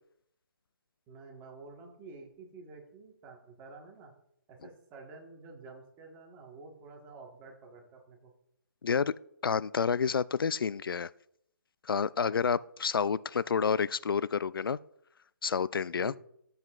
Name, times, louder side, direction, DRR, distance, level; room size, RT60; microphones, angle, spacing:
voice 1, 1.1-4.1 4.5-8.3 12.2-12.5 16.0-16.2, right 3 dB, 15° right, 0 dB, 1.4 m, -50 dB
voice 2, 8.8-9.1 9.4-11.1 11.8-14.8 15.4-16.1, left 6 dB, 85° left, 19 dB, 0.4 m, -29 dB
12.5 x 7.9 x 2.4 m, 0.71 s
hypercardioid pair, 160°, 11 cm